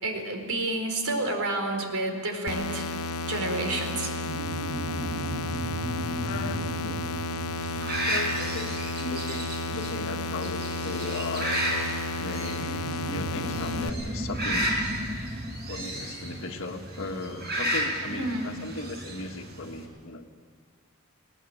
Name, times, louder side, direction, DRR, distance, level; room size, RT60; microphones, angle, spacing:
voice 1, 0.0-2.9 3.3-4.1 18.1-18.5, right 2 dB, 85° right, 4 dB, 4.4 m, -29 dB
sound 1, 2.5-13.9, left 2 dB, 85° left, 0.9 m, -32 dB
sound 2, 4.3-9.2 12.6-17.5, equal, 25° right, 1.2 m, -36 dB
voice 2, 6.2-7.0 8.1-12.8 13.1-14.7 15.7-20.3, left 3 dB, 65° left, 2 dB, 1.9 m, -37 dB
sound 3, 7.6-19.9, equal, 50° right, 4.9 m, -33 dB
20.0 x 19.5 x 8.8 m, 2.1 s
head